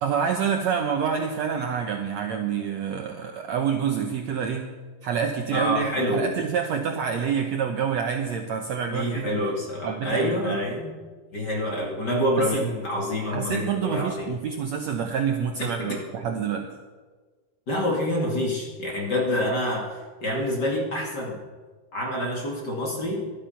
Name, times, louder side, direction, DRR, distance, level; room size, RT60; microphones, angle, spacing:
voice 1, 0.0-4.7 5.0-9.3 9.8-10.6 12.4-12.6 13.2-16.7, right 7 dB, 90° right, 4 dB, 1.5 m, -27 dB
voice 2, 5.5-6.3 8.9-10.9 11.3-14.3 15.6-16.0 17.7-19.9 20.2-21.3 21.9-23.2, left 1 dB, 30° left, -1 dB, 2.3 m, -27 dB
18.5 x 12.0 x 5.8 m, 1.4 s
omnidirectional pair, 4.5 m